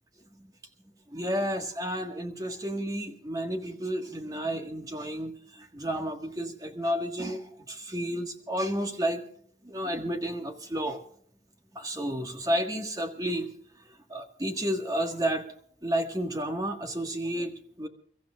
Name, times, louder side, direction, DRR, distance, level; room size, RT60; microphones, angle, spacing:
voice 1, 1.1-9.2 9.6-11.0 11.7-13.5 14.1-17.9, equal, 20° right, 5 dB, 1.6 m, -31 dB
29.5 x 14.5 x 2.4 m, 0.63 s
head